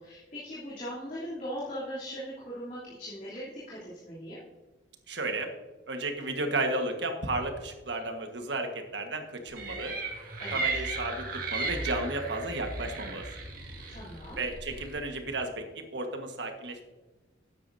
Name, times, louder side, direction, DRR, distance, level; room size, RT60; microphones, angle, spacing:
voice 1, 0.0-4.4 10.4-10.8 13.9-14.4, equal, 40° left, -9 dB, 3.3 m, -39 dB
voice 2, 5.1-5.5 5.9-9.9 10.5-13.3 14.4-16.8, right 2 dB, 65° right, 4 dB, 1.5 m, -33 dB
sound 1, 9.6-15.0, right 3 dB, 45° right, 2.1 m, -35 dB
13.0 x 9.7 x 2.7 m, 1.2 s
head